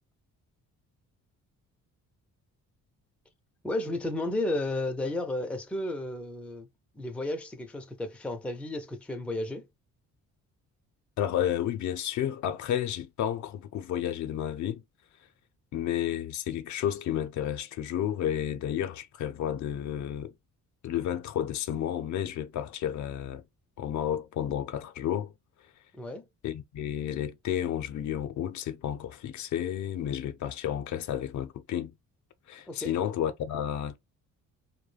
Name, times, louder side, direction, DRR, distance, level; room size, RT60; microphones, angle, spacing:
voice 1, 3.6-6.7 6.9-9.7 25.9-26.3 32.7-32.9, left 1 dB, 5° left, 0.4 m, -33 dB
voice 2, 11.2-14.8 15.7-20.3 20.8-23.4 23.8-25.3 26.4-31.9 32.5-34.0, left 10 dB, 65° left, 0.5 m, -31 dB
2.2 x 2.1 x 3.1 m
cardioid pair, 100°, 32 cm